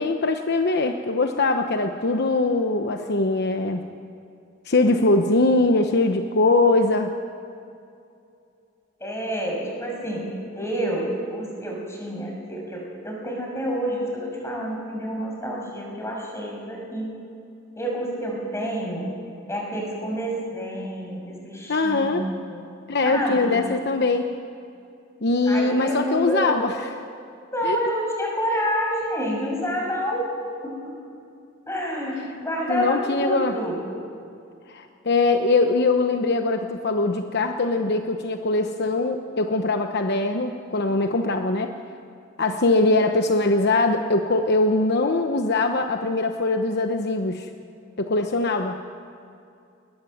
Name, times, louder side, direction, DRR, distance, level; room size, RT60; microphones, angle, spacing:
voice 1, 0.0-3.9 4.6-7.1 21.7-22.2 22.9-24.3 25.2-26.9 27.6-27.9 32.1-32.2 32.7-33.6 34.7-41.7 42.4-47.5 48.0-48.8, left 2 dB, 55° left, 5 dB, 1.0 m, -22 dB
voice 2, 9.0-10.3 10.5-17.1 17.8-19.1 19.5-22.6 23.1-23.5 25.5-26.5 27.5-30.3 30.6-30.9 31.7-33.8, equal, 15° left, -1 dB, 6.5 m, -28 dB
21.5 x 20.0 x 7.9 m, 2.5 s
head